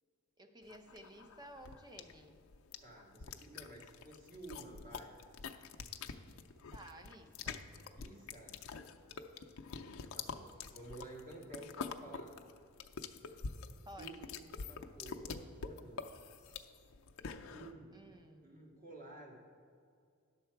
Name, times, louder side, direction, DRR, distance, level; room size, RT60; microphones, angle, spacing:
voice 1, 0.4-2.4 6.7-7.7 13.9-14.3 17.9-18.5, right 1 dB, 20° right, 5 dB, 0.6 m, -54 dB
throat sounds, 0.7-17.7, left 5 dB, 80° left, 0.5 m, -46 dB
voice 2, 2.8-5.1 7.9-8.6 10.1-12.3 14.0-14.2 14.5-16.6 17.5-18.0 18.4-19.4, right 2 dB, 40° right, -2 dB, 1.6 m, -52 dB
10.5 x 6.9 x 4.6 m, 2.2 s
head